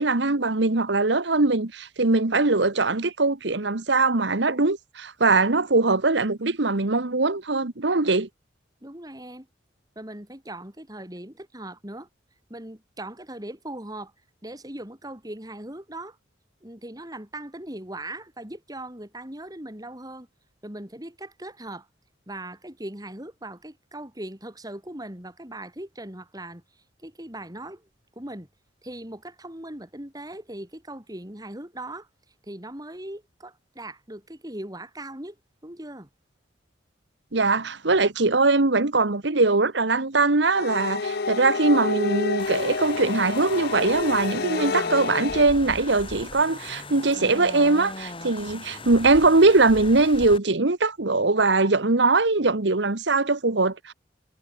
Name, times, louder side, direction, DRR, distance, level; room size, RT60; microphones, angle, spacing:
voice 1, 0.0-8.3 37.3-53.9, right 3 dB, 65° right, 1.3 m, -21 dB
voice 2, 8.8-9.5 10.0-12.1 12.5-14.1 14.4-16.2 16.6-20.3 20.6-21.9 22.3-26.6 27.0-27.9 28.2-28.5 28.8-32.1 32.5-35.4 35.6-36.1, right 1 dB, 20° right, 3.7 m, -39 dB
sound 1, 40.5-45.4, left 4 dB, 55° left, 0.7 m, -29 dB
sound 2, 42.4-50.4, left 3 dB, 30° left, 3.7 m, -38 dB
head